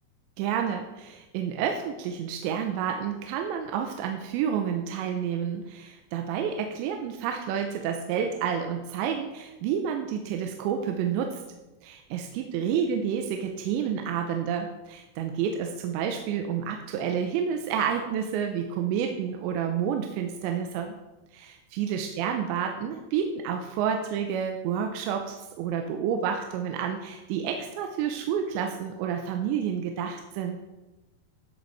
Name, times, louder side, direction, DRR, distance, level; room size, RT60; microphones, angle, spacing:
voice 1, 0.4-11.4 11.8-21.0 21.3-30.6, right 8 dB, 85° right, 4 dB, 3.0 m, -29 dB
13.5 x 7.9 x 4.1 m, 1.1 s
omnidirectional pair, 5.2 m